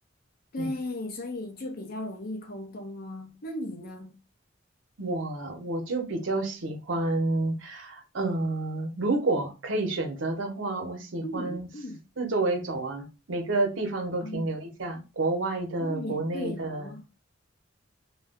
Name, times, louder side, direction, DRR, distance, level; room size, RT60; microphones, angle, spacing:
voice 1, 0.5-4.2 11.2-12.0 14.2-14.5 15.8-17.1, left 1 dB, 50° left, 0.6 m, -36 dB
voice 2, 5.0-11.7 12.2-16.8, right 2 dB, 70° right, 0.7 m, -29 dB
2.2 x 2.0 x 3.4 m
head